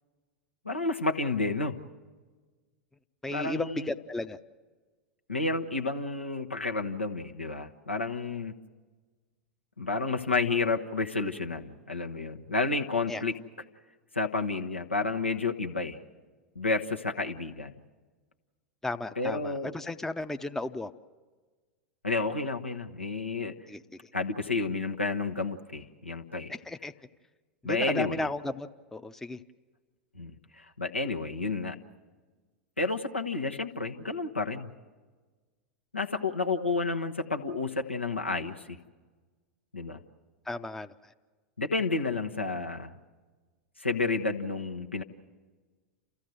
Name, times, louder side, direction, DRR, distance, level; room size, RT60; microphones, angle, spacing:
voice 1, 0.6-1.8 3.3-3.9 5.3-8.5 9.8-13.4 14.1-16.0 16.5-17.7 19.2-19.7 22.0-23.5 24.1-26.6 27.6-28.3 30.1-31.7 32.8-34.7 35.9-38.8 39.7-40.0 41.6-42.9 43.8-45.0, left 3 dB, 90° left, 4 dB, 1.1 m, -30 dB
voice 2, 3.2-4.4 13.1-13.2 18.8-20.9 23.7-23.8 26.7-26.9 27.6-29.4 40.5-40.9, left 2 dB, 5° left, 8 dB, 0.6 m, -34 dB
29.0 x 14.5 x 7.7 m, 1.4 s
figure-of-eight pair, 90°, 6 cm